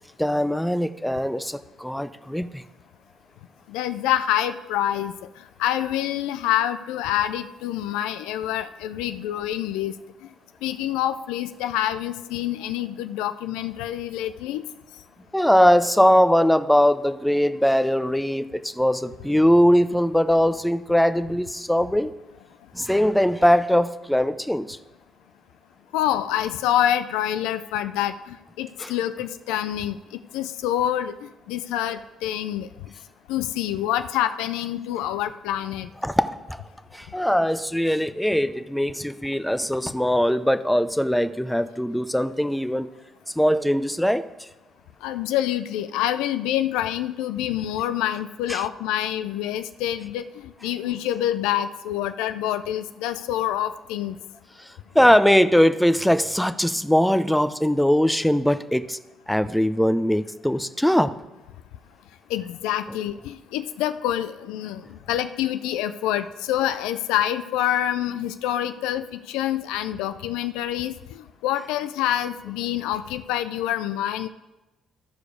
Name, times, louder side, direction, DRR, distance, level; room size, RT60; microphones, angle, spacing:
voice 1, 0.0-2.6 15.3-22.1 22.7-24.8 28.8-28.9 36.0-36.6 36.9-42.9 43.4-44.5 48.5-48.6 54.6-59.0 59.3-61.1 62.9-63.0, equal, 5° left, 12 dB, 0.6 m, -21 dB
voice 2, 3.7-5.1 5.6-9.9 10.6-14.6 25.9-32.7 33.3-35.9 45.0-54.2 62.3-74.3, left 12 dB, 80° left, 11 dB, 0.3 m, -26 dB
13.5 x 4.8 x 4.9 m, 1.0 s
hypercardioid pair, 50°, 0 cm